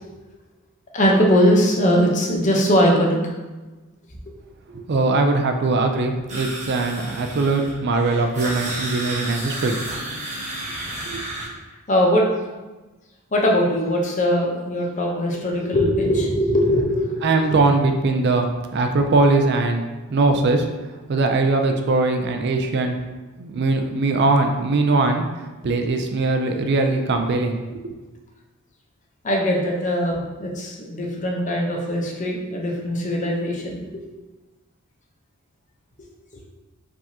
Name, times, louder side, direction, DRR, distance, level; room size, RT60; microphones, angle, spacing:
voice 1, 0.9-3.2 11.9-12.3 13.3-17.6 29.2-33.9, equal, 35° left, -1 dB, 0.7 m, -20 dB
voice 2, 4.7-9.8 11.1-11.2 17.2-20.7 21.1-23.0 23.4-25.2 25.6-27.9, right 3 dB, 50° right, 5 dB, 0.4 m, -21 dB
sound 1, 6.3-11.5, right 1 dB, 35° right, 1.2 m, -32 dB
4.9 x 3.5 x 2.8 m, 1.2 s
head